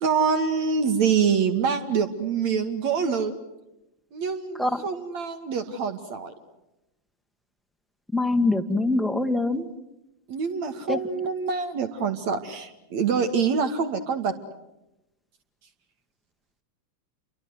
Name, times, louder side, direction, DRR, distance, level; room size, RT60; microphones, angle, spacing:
voice 1, 0.0-3.4 4.1-6.3 10.3-14.4, right 6 dB, 45° right, 9 dB, 2.0 m, -25 dB
voice 2, 8.1-9.7 10.9-11.0, left 2 dB, ahead, 7 dB, 1.8 m, -23 dB
29.5 x 24.5 x 8.0 m, 0.95 s
figure-of-eight pair, 90°, 0 cm